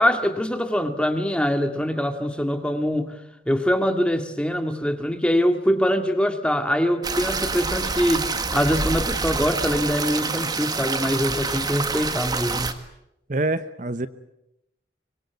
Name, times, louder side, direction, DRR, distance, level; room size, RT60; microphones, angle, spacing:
voice 1, 0.0-3.1 3.5-12.7, equal, 5° left, 7 dB, 2.1 m, -23 dB
sound 1, 7.0-12.7, right 4 dB, 20° right, 1.7 m, -27 dB
voice 2, 13.3-14.1, right 2 dB, 45° right, 12 dB, 0.9 m, -25 dB
25.0 x 21.5 x 9.6 m, 0.85 s
head